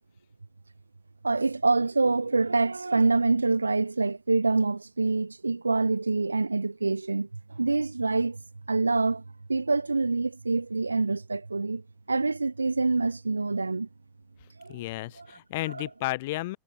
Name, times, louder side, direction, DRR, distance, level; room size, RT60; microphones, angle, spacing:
voice 1, 1.2-8.4 8.7-9.2 9.5-11.8 12.1-13.9 14.6-14.8 15.2-15.3 15.7-15.9, right 3 dB, 80° right, 0.5 m, -26 dB
voice 2, 14.7-16.6, left 19 dB, 50° left, 4.2 m, -32 dB
figure-of-eight pair, 90°, 0 cm